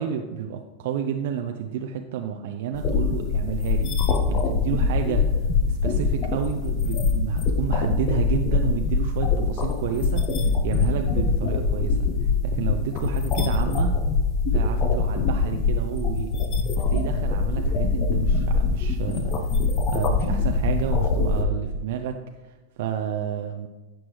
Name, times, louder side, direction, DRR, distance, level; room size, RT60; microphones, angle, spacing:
voice 1, 0.0-13.9 14.5-16.5 16.9-19.5 19.9-23.7, right 8 dB, 55° right, 5 dB, 0.5 m, -31 dB
sound 1, 2.7-21.4, left 4 dB, 35° left, 1.0 m, -23 dB
15.5 x 6.1 x 3.2 m, 1.1 s
figure-of-eight pair, 90°, 0 cm